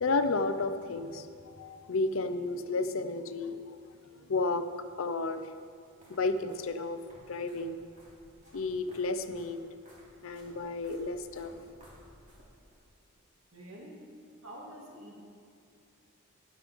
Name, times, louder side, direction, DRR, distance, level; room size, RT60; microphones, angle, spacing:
voice 1, 0.0-3.8 4.3-4.7 5.0-5.4 6.1-7.0 7.3-7.8 8.5-9.6 10.2-11.5, left 3 dB, 70° left, 10 dB, 0.6 m, -32 dB
sound 1, 5.5-12.8, right 1 dB, 35° right, 2.8 m, -58 dB
voice 2, 13.5-14.0 14.4-15.2, right 1 dB, 80° right, -3 dB, 2.2 m, -47 dB
12.0 x 10.5 x 3.6 m, 2.4 s
head